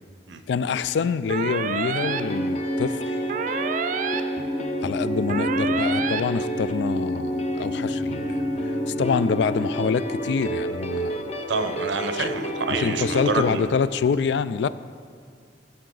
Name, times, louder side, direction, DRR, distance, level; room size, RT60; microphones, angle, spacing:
voice 1, 0.5-3.2 4.8-11.3 12.2-12.3 12.7-14.7, left 5 dB, 70° left, 15 dB, 0.3 m, -26 dB
sound 1, 1.3-2.2 3.3-4.2 5.3-6.2, right 6 dB, 45° right, 0.4 m, -28 dB
sound 2, 2.0-13.6, equal, 35° left, 0.7 m, -28 dB
voice 2, 11.5-13.8, right 3 dB, 85° right, 8 dB, 0.8 m, -28 dB
16.0 x 6.7 x 3.9 m, 2.1 s
head